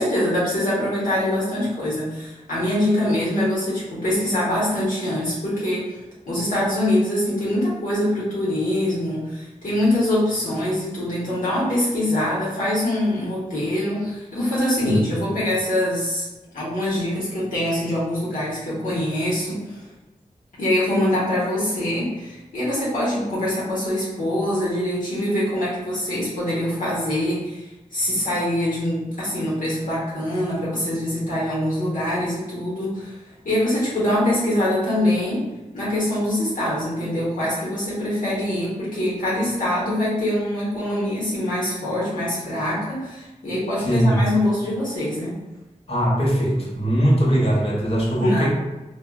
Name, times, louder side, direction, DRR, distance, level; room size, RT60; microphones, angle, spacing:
voice 1, 0.0-6.0 6.3-16.3 16.5-19.8 20.6-27.6 27.9-33.1 33.4-35.4 35.7-45.3 48.2-48.5, left 1 dB, 75° left, -8 dB, 1.0 m, -24 dB
voice 2, 43.8-44.2 45.9-48.5, equal, 45° left, -5 dB, 1.1 m, -20 dB
3.5 x 2.1 x 2.2 m, 1.1 s
cardioid pair, 50°, 14 cm